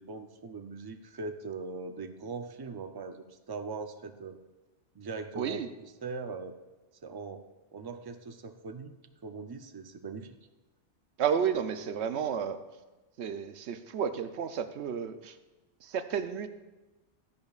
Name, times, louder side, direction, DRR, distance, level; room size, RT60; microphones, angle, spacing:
voice 1, 0.0-4.4 4.9-5.6 6.0-6.6 7.0-8.9 9.2-10.4, right 4 dB, 35° right, 7 dB, 0.4 m, -40 dB
voice 2, 5.3-5.7 11.2-12.6 13.2-15.4 15.8-16.5, right 7 dB, 70° right, 9 dB, 0.9 m, -32 dB
14.0 x 10.5 x 2.4 m, 1.1 s
omnidirectional pair, 1.2 m